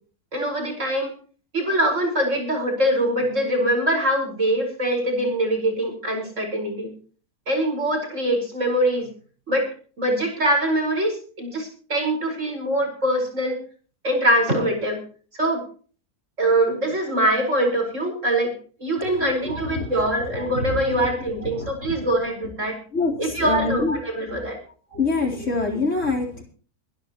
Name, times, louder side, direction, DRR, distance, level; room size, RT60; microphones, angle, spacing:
voice 1, 0.3-1.1 1.5-6.9 7.5-9.1 9.5-9.7 10.0-13.6 14.0-15.0 15.3-15.6 16.4-18.5 18.8-22.8 23.2-24.6, right 1 dB, 55° right, 3 dB, 5.3 m, -23 dB
voice 2, 19.2-21.1 21.4-22.1 22.9-24.0 24.3-24.4 24.9-26.4, left 3 dB, 55° left, 0 dB, 4.3 m, -27 dB
24.0 x 11.5 x 3.0 m, 0.40 s
omnidirectional pair, 1.5 m